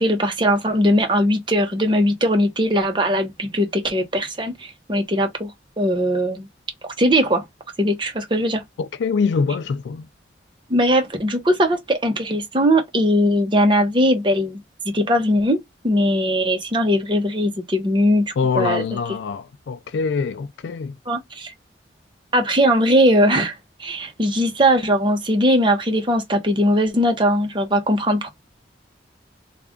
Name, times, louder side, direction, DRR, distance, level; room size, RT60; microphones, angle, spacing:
voice 1, 0.0-5.5 5.8-6.5 7.0-7.4 7.8-8.6 10.7-14.6 14.9-18.2 18.5-18.8 21.1-21.5 22.3-28.3, equal, 30° right, 1.0 m, -19 dB
voice 2, 8.8-10.1 18.4-21.0, left 5 dB, 85° left, 0.3 m, -24 dB
3.3 x 2.5 x 3.5 m
head